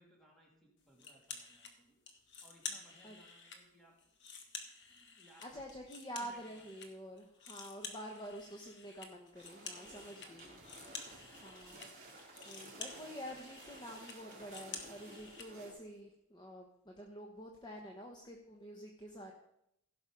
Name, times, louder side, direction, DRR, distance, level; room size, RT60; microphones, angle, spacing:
voice 1, 0.0-2.0 2.4-4.0 4.9-5.7 6.2-6.7 9.7-10.4 11.0-11.4, right 1 dB, ahead, -3 dB, 2.8 m, -65 dB
sound 1, 1.0-1.7 2.1-3.6 4.0-6.9 7.2-15.5, left 5 dB, 55° left, 1.4 m, -50 dB
voice 2, 5.4-10.6 11.4-11.8 12.4-19.3, equal, 20° left, 1 dB, 1.0 m, -48 dB
sound 2, 9.3-15.7, right 2 dB, 35° right, 3.3 m, -54 dB
16.0 x 6.1 x 5.2 m, 0.79 s
head